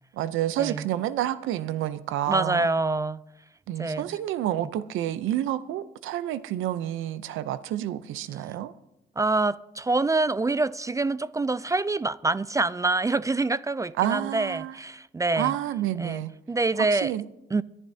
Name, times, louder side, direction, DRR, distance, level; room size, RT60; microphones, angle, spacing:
voice 1, 0.1-2.7 3.7-8.7 14.0-14.7 15.4-16.3 16.9-17.2, right 12 dB, 85° right, 0.6 m, -29 dB
voice 2, 2.3-3.2 3.8-4.2 9.2-15.5 16.0-17.1 17.5-17.6, right 3 dB, 15° right, 0.3 m, -26 dB
23.0 x 11.0 x 2.8 m
cardioid pair, 90°, 20 cm